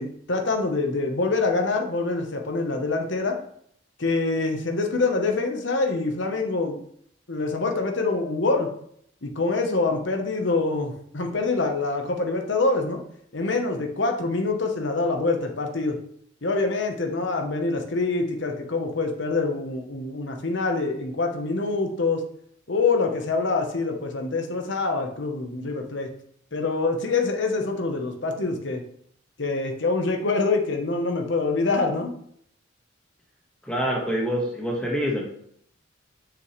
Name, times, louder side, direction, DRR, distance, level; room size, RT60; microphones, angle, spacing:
voice 1, 0.0-3.4 4.0-6.8 7.3-8.7 9.2-13.0 13.3-16.0 16.4-22.2 22.7-26.1 26.5-28.8 29.4-32.1, left 3 dB, 60° left, 3 dB, 1.0 m, -25 dB
voice 2, 33.6-35.3, equal, 5° left, -2 dB, 1.4 m, -26 dB
7.2 x 6.4 x 3.2 m, 0.67 s
head